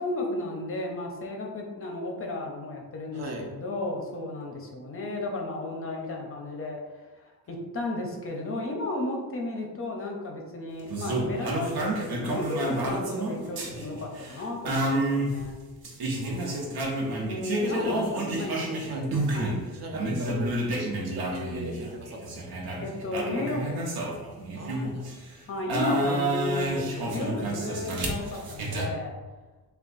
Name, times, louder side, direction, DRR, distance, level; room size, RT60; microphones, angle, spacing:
voice 1, 0.0-6.8 7.2-15.6 17.3-18.1 18.4-18.7 19.3-19.6 22.8-24.2 25.5-29.2, left 2 dB, 35° left, 1 dB, 0.5 m, -33 dB
voice 2, 3.1-3.5 16.2-17.3 17.7-19.2 19.7-22.7 24.5-25.2 26.6-26.7, right 1 dB, 45° right, 1 dB, 0.6 m, -39 dB
sound 1, 10.9-19.6 19.9-25.2 25.7-28.9, right 1 dB, 80° right, 0.8 m, -30 dB
3.4 x 2.3 x 3.8 m, 1.2 s
wide cardioid pair, 160°, 37 cm